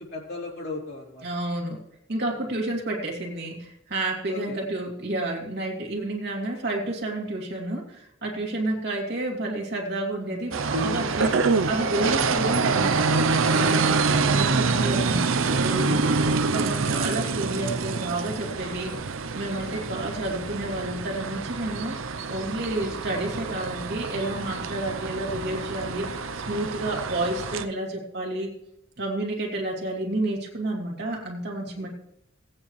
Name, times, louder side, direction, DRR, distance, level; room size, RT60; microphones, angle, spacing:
voice 1, 0.0-1.3 2.3-2.5 4.3-4.7 14.1-14.2 14.6-14.9 16.2-16.4 16.8-17.2 19.6-20.0 31.8-31.9, left 2 dB, 50° left, -4 dB, 3.7 m, -38 dB
voice 2, 1.2-1.8 2.1-13.9 14.3-28.5 29.0-31.9, right 1 dB, 55° right, 0 dB, 2.7 m, -30 dB
sound 1, 10.5-27.7, right 4 dB, 75° right, 0.7 m, -26 dB
18.0 x 8.8 x 3.2 m, 0.80 s
head